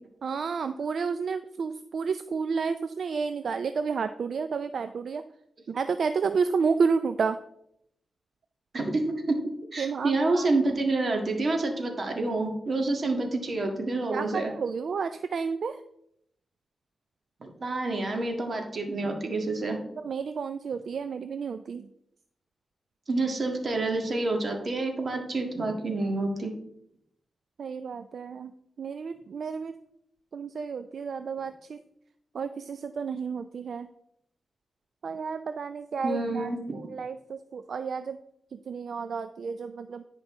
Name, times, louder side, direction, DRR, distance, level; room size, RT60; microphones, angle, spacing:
voice 1, 0.2-5.2 5.7-7.4 9.8-10.5 14.1-15.8 20.0-21.9 27.6-28.5 28.8-29.7 30.3-31.8 32.3-33.9 35.0-38.2 38.5-40.0, right 5 dB, 70° right, 10 dB, 0.4 m, -31 dB
voice 2, 9.7-14.5 17.4-19.8 23.1-26.5 36.0-36.6, right 2 dB, 50° right, 3 dB, 1.7 m, -28 dB
10.5 x 5.2 x 3.6 m, 0.75 s
cardioid pair, 75°, 0 cm